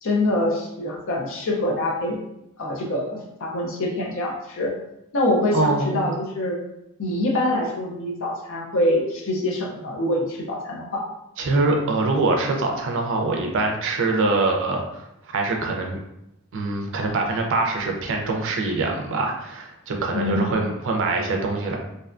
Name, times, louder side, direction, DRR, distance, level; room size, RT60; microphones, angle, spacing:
voice 1, 0.0-2.2 2.6-4.7 5.1-6.6 7.0-11.0 20.1-20.6, left 1 dB, 65° left, 0 dB, 0.6 m, -25 dB
voice 2, 5.5-6.2 11.4-16.0 16.5-21.8, right 3 dB, 60° right, 1 dB, 0.5 m, -24 dB
2.6 x 2.2 x 2.5 m, 0.84 s
head